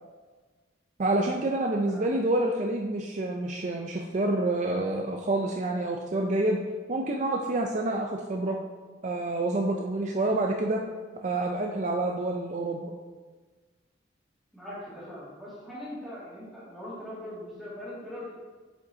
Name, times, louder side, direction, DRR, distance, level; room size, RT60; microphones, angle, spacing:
voice 1, 1.0-6.6 6.9-8.6 9.0-10.8 11.2-12.9, right 2 dB, 40° right, 1 dB, 0.4 m, -28 dB
voice 2, 14.5-18.3, left 1 dB, ahead, -9 dB, 2.1 m, -41 dB
7.9 x 5.4 x 2.7 m, 1.4 s
head